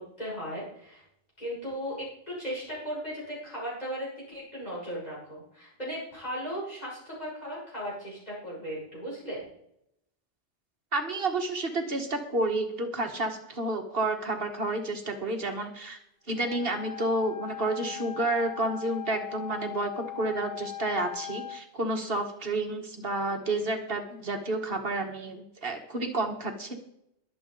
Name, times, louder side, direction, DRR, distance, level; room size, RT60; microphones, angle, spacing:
voice 1, 0.2-1.0 1.4-9.5, equal, 35° left, -6 dB, 6.7 m, -37 dB
voice 2, 10.9-16.0 16.3-26.8, right 2 dB, 55° right, 4 dB, 1.9 m, -30 dB
Wind instrument woodwind instrument, 16.3-21.6, left 14 dB, 75° left, 1.5 m, -40 dB
22.0 x 7.8 x 4.0 m, 0.76 s
omnidirectional pair, 1.2 m